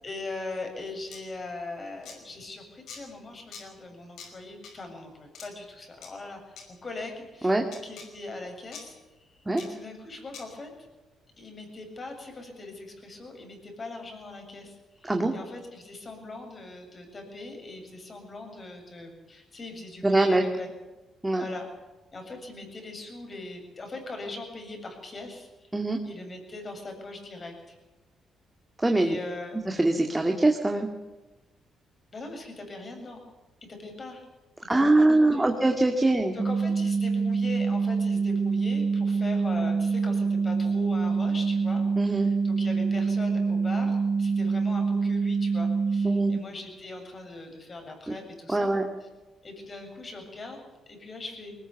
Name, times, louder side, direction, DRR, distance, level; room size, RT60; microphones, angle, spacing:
voice 1, 0.0-10.7 11.4-20.7 21.3-21.7 22.1-25.7 26.0-27.8 29.0-29.6 32.1-33.2 33.7-34.2 34.7-35.5 36.0-49.1 49.4-51.6, left 2 dB, 35° left, 3 dB, 7.7 m, -41 dB
sound 1, 1.1-1.2 2.0-2.2 2.9-3.0 3.5-3.6 4.2-4.3 4.6-4.7 5.3-5.5 6.0-6.1 6.6-6.7 7.7-8.1 8.7-8.8 9.6-9.7 10.3-10.4, left 6 dB, 75° left, 5.6 m, -43 dB
voice 2, 20.0-20.4 21.2-21.5 25.7-26.0 28.8-29.2 29.7-30.9 34.7-36.4 42.0-42.3 46.0-46.3 48.5-48.8, right 2 dB, 15° right, 3 dB, 2.2 m, -23 dB
sound 2, 36.4-46.4, right 4 dB, 30° right, 1.5 m, -26 dB
21.5 x 19.5 x 7.1 m, 1.2 s
cardioid pair, 90°, 0 cm